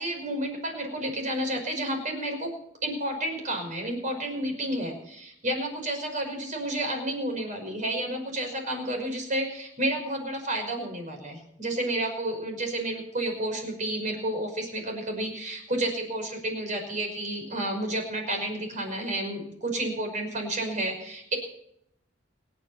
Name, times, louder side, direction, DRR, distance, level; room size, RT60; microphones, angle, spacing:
voice 1, 0.0-2.5 2.8-21.4, right 1 dB, 40° right, 4 dB, 5.5 m, -31 dB
28.5 x 10.0 x 4.3 m, 0.71 s
head